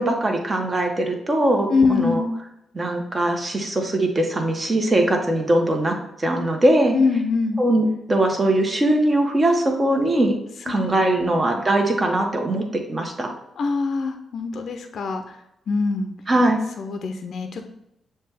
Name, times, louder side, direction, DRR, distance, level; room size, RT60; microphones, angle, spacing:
voice 1, 0.0-2.2 2.7-7.0 7.6-10.4 10.7-13.3 16.3-16.6, right 1 dB, 35° right, 3 dB, 1.0 m, -21 dB
voice 2, 1.7-2.3 6.9-7.6 10.7-10.9 11.2-11.4 13.6-15.4 15.7-16.1 16.8-17.7, left 4 dB, 65° left, 6 dB, 0.4 m, -23 dB
6.5 x 2.2 x 3.3 m, 0.82 s
supercardioid pair, 60°, 0 cm